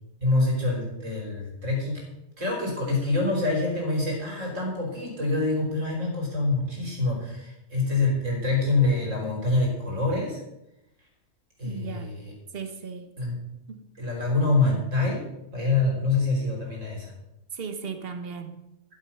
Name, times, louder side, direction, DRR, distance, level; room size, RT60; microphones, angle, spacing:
voice 1, 0.2-2.1 2.4-10.4 11.6-12.3 13.2-13.4 14.0-15.2 15.5-17.1, left 2 dB, 90° right, 0 dB, 4.0 m, -26 dB
voice 2, 11.6-12.1 12.5-13.1 13.7-13.9 17.5-18.6, right 6 dB, 50° right, 7 dB, 1.4 m, -36 dB
12.5 x 7.3 x 5.7 m, 0.88 s
omnidirectional pair, 1.3 m